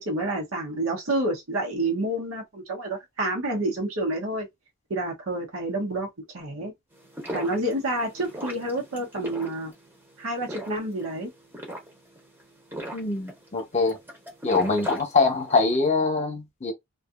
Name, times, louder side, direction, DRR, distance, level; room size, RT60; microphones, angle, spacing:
voice 1, 0.0-4.5 4.9-6.1 6.3-6.7 7.3-9.7 10.2-11.3, right 1 dB, 75° right, 1.0 m, -28 dB
sound 1, 6.9-15.7, right 1 dB, 10° right, 0.8 m, -39 dB
voice 2, 12.9-14.0 14.4-16.7, left 3 dB, 30° left, 0.9 m, -23 dB
2.7 x 2.4 x 2.4 m
head